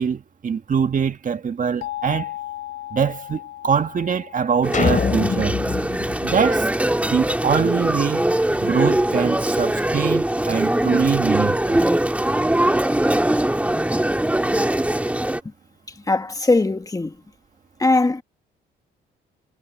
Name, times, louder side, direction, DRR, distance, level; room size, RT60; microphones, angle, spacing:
voice 1, 0.0-2.3 2.9-5.6 6.2-6.7 7.1-8.3 8.6-11.8, right 6 dB, 40° right, 1.8 m, -23 dB
sound 1, 1.8-6.5, left 14 dB, 85° left, 2.3 m, -37 dB
sound 2, 4.6-15.4, right 1 dB, 5° right, 2.6 m, -21 dB
sound 3, 4.7-7.2, left 6 dB, 40° left, 3.0 m, -25 dB
voice 2, 16.1-17.1 17.8-18.2, left 2 dB, 20° left, 1.6 m, -19 dB
cardioid pair, 90°, 20 cm